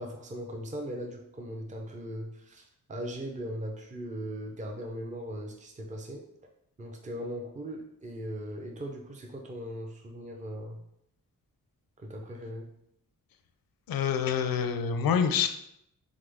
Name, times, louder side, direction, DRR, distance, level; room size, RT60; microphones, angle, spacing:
voice 1, 0.0-2.6 2.9-6.2 6.8-10.8 12.0-12.7, equal, 20° right, 1 dB, 0.5 m, -39 dB
voice 2, 13.9-15.5, left 7 dB, 90° left, 8 dB, 0.5 m, -26 dB
3.8 x 3.7 x 3.4 m, 0.77 s
wide cardioid pair, 150°, 34 cm